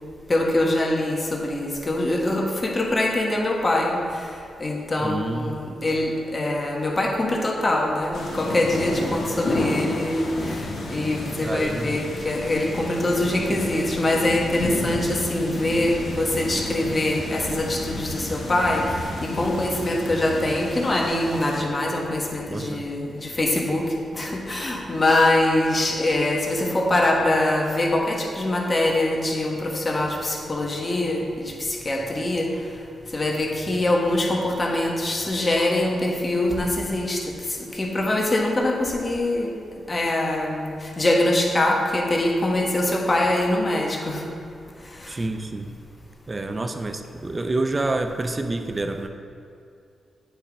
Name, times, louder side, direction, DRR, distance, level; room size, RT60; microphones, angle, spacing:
voice 1, 0.3-4.0 4.6-10.6 10.9-32.5 33.1-37.3 37.7-39.5 39.9-44.2 45.0-45.1, left 1 dB, 35° left, 0 dB, 1.4 m, -23 dB
voice 2, 5.0-5.6 11.4-12.0 22.5-22.9 45.1-45.7 46.3-49.1, right 2 dB, 35° right, 7 dB, 0.6 m, -28 dB
sound 1, 8.1-21.6, left 1 dB, 70° left, 1.2 m, -31 dB
8.7 x 5.0 x 3.6 m, 2.4 s
supercardioid pair, 45°, 0 cm